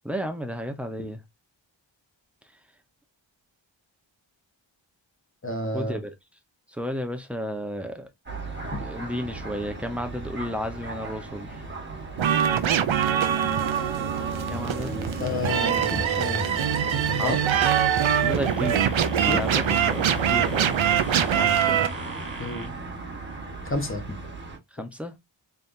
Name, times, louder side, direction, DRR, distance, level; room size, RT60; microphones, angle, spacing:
voice 1, 0.0-1.2 5.7-6.1 6.7-8.1 8.6-11.6 14.5-15.0 17.2-17.7 18.2-20.7 21.3-21.9 24.7-25.2, equal, 5° right, 0.8 m, -33 dB
voice 2, 5.4-6.0 8.7-8.8 15.2-16.4 16.9-17.4 19.3-19.4 22.4-22.7 23.6-24.2, left 2 dB, 25° left, 1.2 m, -30 dB
sound 1, 8.3-24.6, right 1 dB, 25° right, 1.3 m, -35 dB
sound 2, 12.2-21.9, right 9 dB, 80° right, 0.6 m, -24 dB
sound 3, 17.7-22.7, right 3 dB, 45° right, 1.3 m, -41 dB
4.2 x 3.5 x 2.6 m
wide cardioid pair, 90°, 47 cm